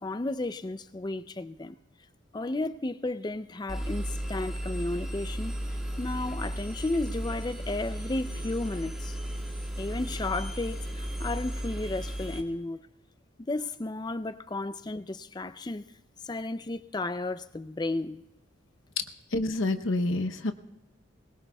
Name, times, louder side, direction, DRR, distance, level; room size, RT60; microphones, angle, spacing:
voice 1, 0.0-1.8 2.3-5.5 6.0-9.2 9.8-12.8 13.5-15.8 16.2-18.2, left 2 dB, 20° left, 0.4 m, -33 dB
Engine, 3.7-12.4, right 1 dB, 5° right, 1.7 m, -35 dB
voice 2, 19.3-20.5, left 2 dB, 75° left, 0.8 m, -27 dB
22.0 x 20.0 x 2.3 m
head